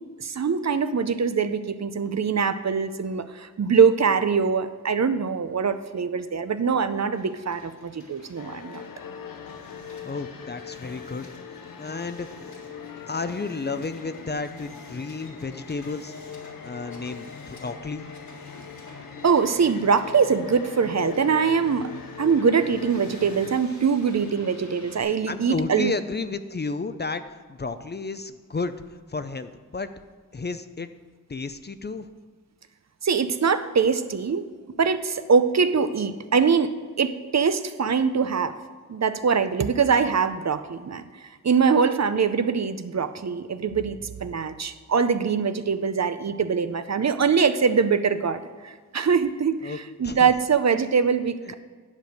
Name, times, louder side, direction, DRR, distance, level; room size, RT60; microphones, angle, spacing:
voice 1, 0.2-8.8 19.2-21.9 22.2-25.9 33.0-34.5 34.8-38.5 38.9-51.5, right 6 dB, 55° right, 11 dB, 0.6 m, -23 dB
Hiss, 7.1-25.0, left 1 dB, 60° left, 1.9 m, -48 dB
sound 1, 8.4-23.6, left 7 dB, 85° left, 0.6 m, -41 dB
voice 2, 10.0-11.3 11.8-12.6 13.1-16.1 16.6-18.0 25.3-27.2 27.5-29.9 30.3-30.9 31.3-32.1 49.6-49.8 50.0-50.3 51.5-51.6, left 4 dB, 30° left, 11 dB, 0.5 m, -32 dB
10.5 x 5.2 x 6.4 m, 1.5 s
wide cardioid pair, 75°, 33 cm